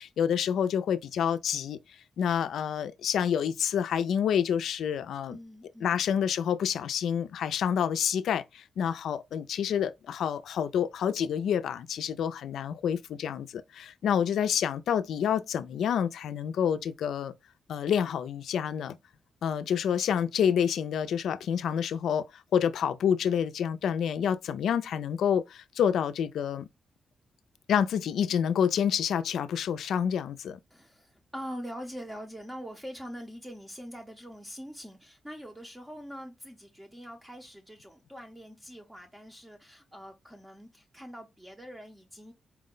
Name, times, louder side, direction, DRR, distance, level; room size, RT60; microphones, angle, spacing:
voice 1, 0.0-1.8 2.2-5.4 5.8-17.3 17.7-19.0 19.4-22.2 22.5-26.7 27.7-30.6, left 8 dB, 85° left, 0.3 m, -28 dB
voice 2, 5.3-6.0 30.7-42.3, equal, 10° right, 0.6 m, -43 dB
4.4 x 2.1 x 3.7 m
cardioid pair, 115°, 0 cm